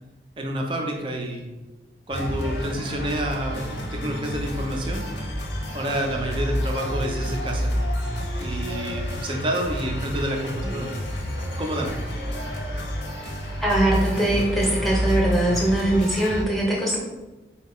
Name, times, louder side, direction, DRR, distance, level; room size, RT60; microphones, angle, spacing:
voice 1, 0.4-1.5 2.1-5.1 5.7-7.7 8.4-10.9 11.6-12.0, right 1 dB, 30° right, 2 dB, 0.4 m, -29 dB
sound 1, 2.1-16.4, equal, 80° left, 0.8 m, -29 dB
voice 2, 13.6-17.0, right 1 dB, ahead, -4 dB, 0.8 m, -22 dB
4.3 x 2.3 x 3.5 m, 1.1 s
head